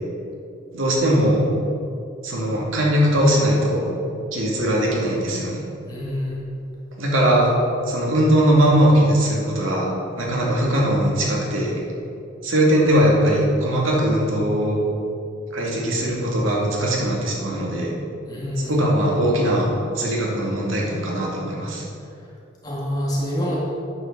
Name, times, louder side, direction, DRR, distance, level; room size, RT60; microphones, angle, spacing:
voice 1, 0.7-1.4 2.2-3.9 4.3-5.6 7.0-7.5 7.9-9.9 10.2-11.8 12.4-14.8 15.5-17.9 18.7-21.8, right 1 dB, 85° right, -3 dB, 2.2 m, -20 dB
voice 2, 5.9-6.4 18.3-18.7 22.6-23.6, equal, 20° left, -6 dB, 2.1 m, -26 dB
9.3 x 6.6 x 6.5 m, 2.7 s
head